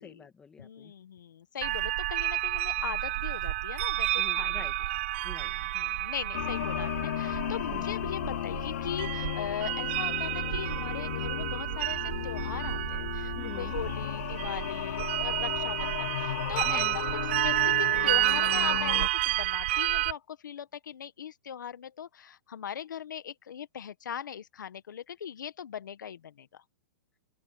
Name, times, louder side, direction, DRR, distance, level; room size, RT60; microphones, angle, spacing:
voice 1, 0.0-0.9 4.2-5.5 7.7-7.9 13.4-13.8 16.6-17.0, left 5 dB, 10° left, 2.2 m, -47 dB
voice 2, 0.6-4.7 5.4-12.0 12.2-16.9 17.4-18.9 19.2-26.6, left 9 dB, 80° left, 1.4 m, -40 dB
sound 1, 1.6-20.1, right 17 dB, 35° right, 0.4 m, -30 dB
sound 2, 6.3-19.1, left 13 dB, 45° left, 0.3 m, -35 dB
open air
hypercardioid pair, 165°, 10 cm